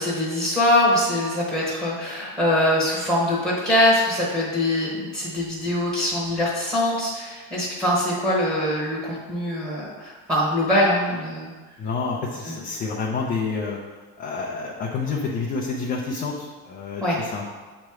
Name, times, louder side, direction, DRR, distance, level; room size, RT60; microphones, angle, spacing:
voice 1, 0.0-11.5 12.5-12.6 17.0-17.2, left 1 dB, 10° right, -6 dB, 1.0 m, -23 dB
voice 2, 11.8-13.8 14.2-17.4, left 4 dB, 20° left, -2 dB, 0.4 m, -28 dB
7.6 x 3.2 x 4.7 m, 1.3 s
cardioid pair, 165°, 41 cm